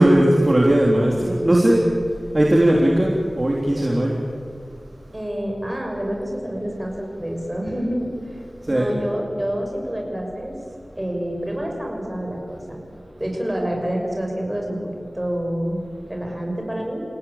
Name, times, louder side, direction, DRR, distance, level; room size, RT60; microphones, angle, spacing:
voice 1, 0.0-1.9 2.3-4.2 8.7-8.9, right 1 dB, 35° right, -2 dB, 3.4 m, -17 dB
voice 2, 5.1-8.1 8.7-10.5 11.0-12.8 13.2-17.0, equal, 15° right, 0 dB, 7.0 m, -27 dB
29.5 x 17.0 x 8.8 m, 2.2 s
wide cardioid pair, 75°, 0 cm